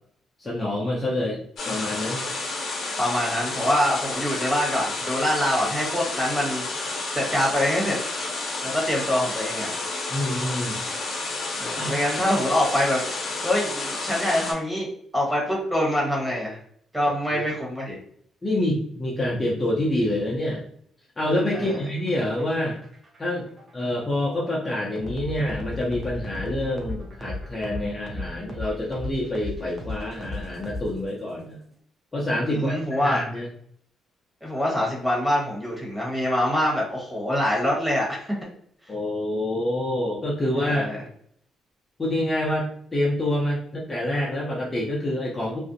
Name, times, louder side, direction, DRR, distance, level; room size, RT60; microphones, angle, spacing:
voice 1, 0.4-2.2 10.1-10.8 11.7-11.9 17.3-17.4 17.9-18.0 18.4-20.6 21.2-22.8 23.2-23.5 23.7-31.6 32.1-33.5 38.9-40.9 42.0-45.6, left 1 dB, 25° left, -4 dB, 0.5 m, -27 dB
sound 1, 1.6-14.5, left 3 dB, 65° left, 0.8 m, -30 dB
voice 2, 3.0-6.6 7.1-8.0 8.6-9.8 11.6-16.6 16.9-18.0 21.5-21.8 32.5-33.2 34.4-38.3 40.6-41.0, left 1 dB, 5° right, -4 dB, 1.1 m, -25 dB
sound 2, 21.5-31.3, left 1 dB, 40° right, 0.5 m, -37 dB
2.5 x 2.0 x 2.6 m, 0.64 s
cardioid pair, 90°, 0 cm